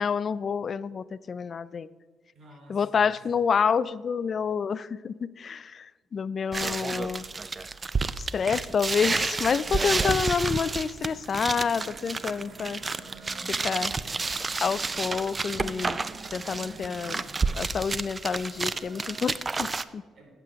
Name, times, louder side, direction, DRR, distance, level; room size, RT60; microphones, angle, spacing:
voice 1, 0.0-1.9 2.7-7.2 8.2-12.8 13.6-13.9 14.6-16.0 16.3-17.2 17.5-20.0, left 6 dB, 45° left, 18 dB, 0.4 m, -28 dB
voice 2, 2.3-3.2 9.7-10.3 13.3-14.3 16.9-17.5 20.1-20.4, equal, 55° right, 1 dB, 3.2 m, -49 dB
sound 1, 6.5-19.8, right 4 dB, 30° right, 0.4 m, -30 dB
sound 2, 8.1-19.3, right 3 dB, 70° right, 1.3 m, -50 dB
9.7 x 8.3 x 5.8 m, 1.4 s
cardioid pair, 90°, 0 cm